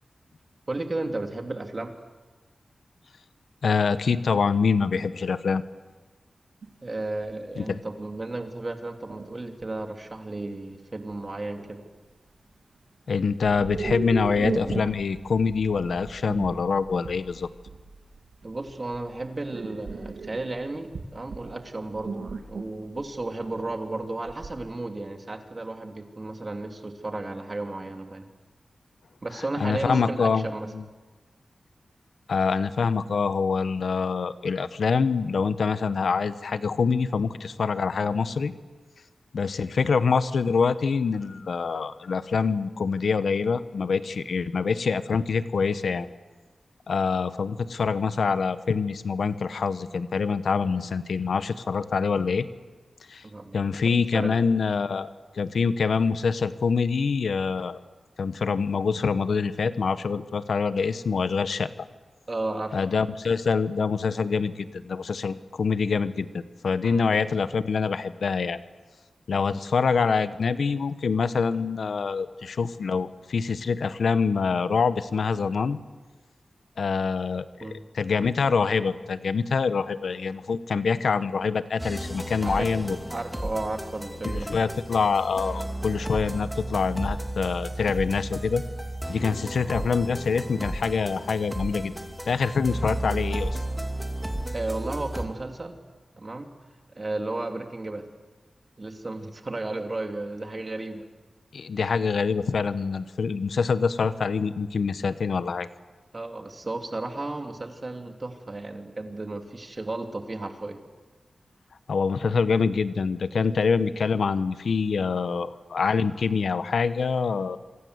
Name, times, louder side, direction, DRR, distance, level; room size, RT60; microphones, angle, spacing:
voice 1, 0.7-1.9 6.8-11.8 18.4-28.3 29.2-30.7 50.6-50.8 53.2-54.4 62.3-62.8 66.8-67.0 77.6-77.8 82.4-82.8 83.1-84.5 89.6-89.7 94.5-95.8 96.2-96.5 96.9-98.0 98.8-101.0 106.1-110.8, right 2 dB, 35° right, 5 dB, 2.8 m, -33 dB
voice 2, 3.6-5.6 7.6-7.8 13.1-17.5 29.6-30.5 30.7-30.8 32.3-38.5 39.3-46.1 46.9-52.5 53.1-53.2 53.5-55.1 55.3-57.8 58.2-61.7 62.7-68.6 69.3-75.8 76.8-77.4 77.9-83.0 84.2-88.6 89.1-91.9 92.2-93.6 101.5-105.7 111.9-117.6, left 5 dB, 80° left, 13 dB, 1.2 m, -25 dB
sound 1, 6.6-6.7 7.2-7.4 8.1-8.2 9.1-9.8 11.1-11.2 11.6-11.9 13.4-24.7, right 4 dB, 80° right, 2.5 m, -36 dB
sound 2, 81.8-95.3, right 1 dB, 5° right, 2.7 m, -33 dB
27.0 x 24.5 x 8.1 m, 1.2 s
wide cardioid pair, 120°, 0 cm